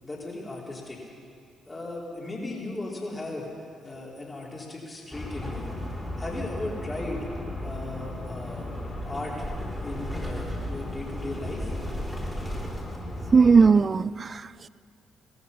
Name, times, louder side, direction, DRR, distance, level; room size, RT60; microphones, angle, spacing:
voice 1, 0.0-1.0 1.7-5.7 6.2-7.3 7.6-8.7 9.0-9.4 9.8-11.7, left 2 dB, 25° left, 4.7 m, -36 dB
sound 1, 5.1-13.7, left 1 dB, 5° left, 4.1 m, -34 dB
voice 2, 13.3-14.7, right 5 dB, 35° right, 0.3 m, -19 dB
18.5 x 13.5 x 5.7 m
figure-of-eight pair, 40°, 0 cm